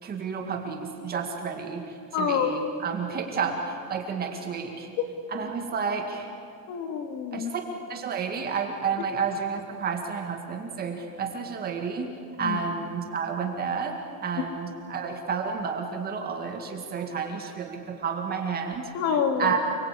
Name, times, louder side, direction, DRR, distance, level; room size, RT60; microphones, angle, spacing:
voice 1, 0.0-4.9 5.3-6.3 7.3-7.6 7.9-12.1 12.4-14.0 14.2-18.9 19.4-19.6, right 6 dB, 20° right, 3 dB, 2.1 m, -31 dB
voice 2, 2.1-2.5 6.7-7.5 12.4-12.6 18.9-19.6, left 7 dB, 40° left, 5 dB, 2.5 m, -27 dB
29.0 x 23.0 x 8.5 m, 2.5 s
cardioid pair, 170°, 41 cm